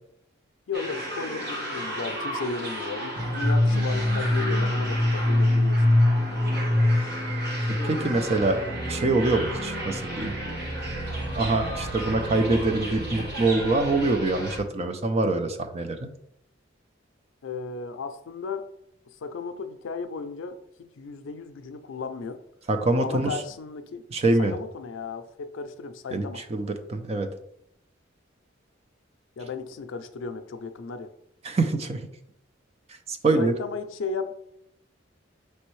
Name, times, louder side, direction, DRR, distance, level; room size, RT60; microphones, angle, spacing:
voice 1, 0.7-5.8 17.4-18.7 19.2-22.4 23.0-24.0 24.4-26.4 29.4-31.1 33.4-34.3, left 4 dB, 85° left, 9 dB, 0.4 m, -35 dB
sound 1, 0.7-14.6, left 1 dB, 55° right, 1.4 m, -26 dB
voice 2, 7.7-8.6 8.9-10.4 11.4-16.1 22.7-23.4 24.1-24.6 26.1-27.3 31.4-32.1 32.9-33.5, right 2 dB, 35° right, 7 dB, 0.4 m, -25 dB
5.3 x 3.3 x 3.1 m, 0.77 s
head